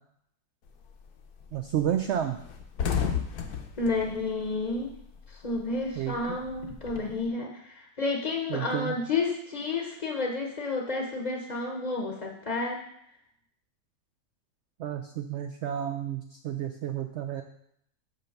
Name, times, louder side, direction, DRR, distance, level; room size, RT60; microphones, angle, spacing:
sound 1, 0.7-1.0 1.4-1.5 1.8-1.9 2.3-5.3 5.5-7.2, left 7 dB, 70° left, 1.3 m, -33 dB
voice 1, 1.5-2.4 6.0-6.1 8.5-9.0 14.8-17.4, right 10 dB, 80° right, 6 dB, 0.6 m, -31 dB
voice 2, 3.8-4.9 5.3-12.8, left 3 dB, 35° left, 1 dB, 0.7 m, -31 dB
5.7 x 5.3 x 6.5 m, 0.73 s
omnidirectional pair, 1.7 m